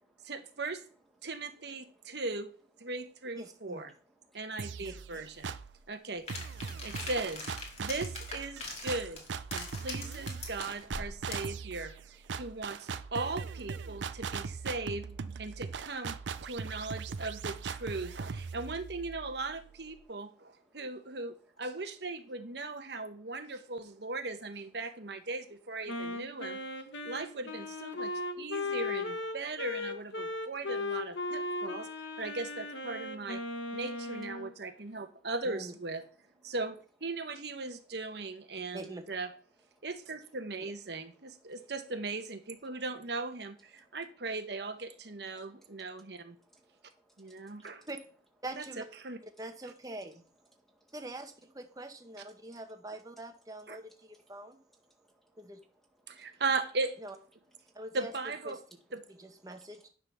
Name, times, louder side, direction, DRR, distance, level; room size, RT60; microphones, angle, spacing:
voice 1, 0.2-0.8 1.2-2.5 2.8-3.9 4.3-5.5 5.9-6.3 6.8-7.5 7.8-9.2 9.5-15.1 15.4-26.6 27.0-31.9 32.2-33.4 33.7-36.0 36.4-39.3 39.8-46.4 47.2-47.8 48.6-48.7 49.0-49.2 53.7-53.8 56.1-57.0 57.9-58.6 58.9-59.0, right 3 dB, 60° right, 1.1 m, -38 dB
voice 2, 1.8-2.2 4.2-4.4 5.7-5.9 9.5-9.9 12.3-12.7 15.5-15.6 20.0-20.1 20.6-20.8 23.5-23.6 26.9-27.1 28.4-28.5 30.2-30.3 35.0-35.2 39.8-39.9 41.2-41.6 42.6-42.8 43.8-44.0 45.3-47.9 50.6-50.9 52.4-52.6 53.9-54.0 54.2-54.3 54.7-56.4 57.6-57.8 59.7-59.8, right 1 dB, ahead, 1.8 m, -69 dB
voice 3, 3.4-3.8 4.8-5.2 35.4-35.7 38.7-39.0 40.6-40.7 47.9-48.0 48.4-48.8 49.4-50.2 50.9-54.6 55.4-55.6 57.0-57.1 57.7-58.1 58.4-58.6 59.2-59.8, right 2 dB, 20° right, 1.1 m, -44 dB
sound 1, 4.6-5.8 6.3-20.0, right 5 dB, 80° right, 0.5 m, -40 dB
sound 2, 6.3-11.5, left 3 dB, 35° left, 2.2 m, -42 dB
Wind instrument woodwind instrument, 25.9-34.5, left 2 dB, 85° left, 1.1 m, -37 dB
9.9 x 3.9 x 6.1 m
head